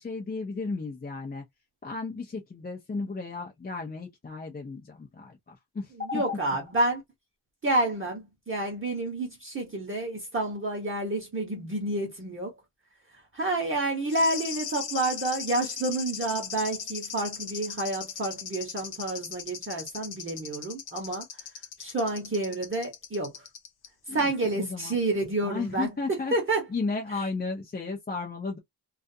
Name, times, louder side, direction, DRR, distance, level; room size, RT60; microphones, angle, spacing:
voice 1, 0.0-1.4 1.8-6.4 24.1-24.3 24.6-25.0 25.4-26.3 26.7-28.6, left 4 dB, 20° left, 0.5 m, -34 dB
voice 2, 6.0-7.0 7.6-12.5 13.1-21.4 21.8-23.3 24.1-26.7 27.1-27.3, right 2 dB, 30° right, 0.8 m, -29 dB
sound 1, 14.1-23.9 24.2-24.3, left 7 dB, 60° left, 0.7 m, -38 dB
2.4 x 2.3 x 2.6 m
wide cardioid pair, 175°, 43 cm